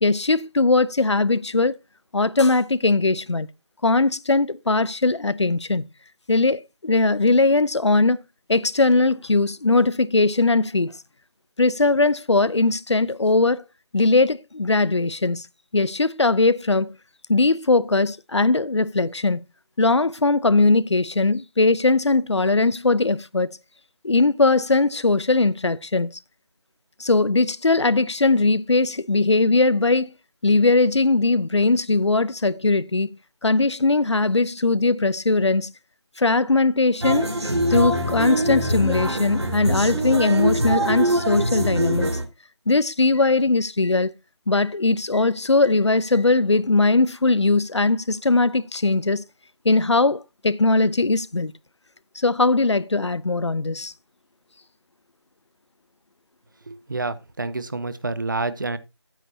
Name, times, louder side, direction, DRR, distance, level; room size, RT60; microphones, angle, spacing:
voice 1, 0.0-1.8 2.1-3.5 3.8-5.9 6.3-8.2 8.5-11.0 11.6-13.6 13.9-15.5 15.7-16.9 17.3-19.4 19.8-23.6 24.0-26.1 27.0-30.1 30.4-33.1 33.4-35.7 36.2-37.3 37.7-42.1 42.7-44.1 44.5-49.2 49.6-51.5 52.2-53.9, left 3 dB, 85° left, 0.7 m, -20 dB
sound 1, 37.0-42.2, right 1 dB, 70° right, 2.8 m, -23 dB
voice 2, 56.7-58.8, right 3 dB, 45° right, 0.9 m, -28 dB
13.0 x 9.1 x 2.8 m
figure-of-eight pair, 170°, 14 cm